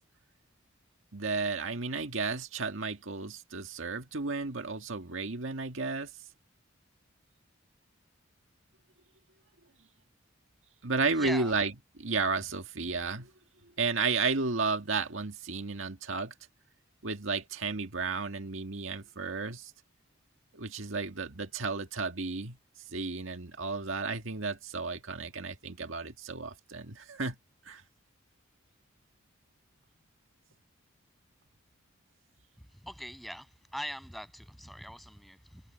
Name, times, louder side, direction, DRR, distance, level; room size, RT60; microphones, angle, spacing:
voice 1, 1.1-6.1 10.8-11.7 12.0-13.3 13.8-16.3 17.0-19.7 20.5-22.6 22.9-27.4 27.7-27.8, right 4 dB, 85° right, 1.8 m, -33 dB
voice 2, 11.2-11.5 32.8-33.5 33.7-35.6, equal, ahead, 7.3 m, -41 dB
head